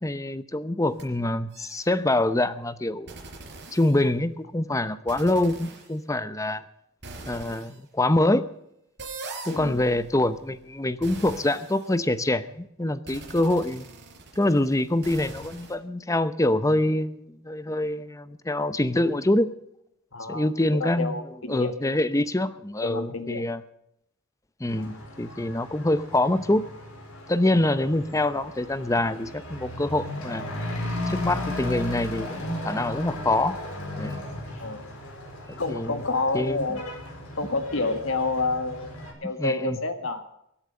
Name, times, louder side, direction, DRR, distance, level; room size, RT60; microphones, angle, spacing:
voice 1, 0.0-3.1 3.7-6.6 7.3-8.5 9.5-13.9 14.4-19.5 20.3-21.2 21.5-23.6 24.6-26.6 27.3-30.5 31.1-33.6 34.0-34.2 35.5-36.0 36.3-36.8 39.4-39.8, left 1 dB, 15° left, 14 dB, 0.7 m, -25 dB
sound 1, 0.9-1.0 1.5-1.9 3.1-4.3 5.1-5.9 7.0-7.8 9.0-12.4 13.1-15.7, right 3 dB, 55° right, 5.0 m, -42 dB
voice 2, 9.5-9.8 20.1-22.0 22.8-23.5 34.6-34.9 35.6-36.8 37.4-40.4, left 3 dB, 65° left, 8 dB, 1.9 m, -29 dB
Truck / Accelerating revving vroom, 24.7-39.1, left 1 dB, 85° left, 4.4 m, -36 dB
23.5 x 8.8 x 6.5 m, 0.78 s
head